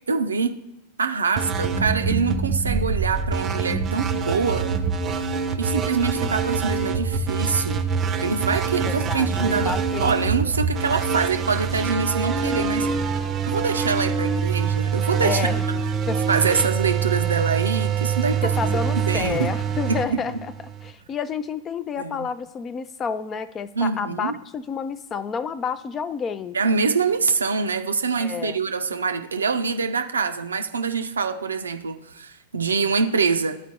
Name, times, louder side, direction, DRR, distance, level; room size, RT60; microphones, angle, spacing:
voice 1, 0.1-0.6 1.0-4.7 5.6-7.8 8.2-12.9 13.5-15.5 15.7-15.8 16.3-18.5 18.9-19.5 19.9-20.2 22.0-22.3 23.8-24.3 26.5-33.6, right 5 dB, 75° right, 6 dB, 0.4 m, -25 dB
sound 1, 1.4-20.9, right 6 dB, 25° right, 0.6 m, -25 dB
voice 2, 8.9-10.5 15.2-15.6 16.1-16.2 16.5-16.6 18.4-20.5 20.8-26.6 28.2-28.6, left 6 dB, 25° left, 15 dB, 0.3 m, -30 dB
12.5 x 4.3 x 2.8 m, 0.89 s
figure-of-eight pair, 90°, 0 cm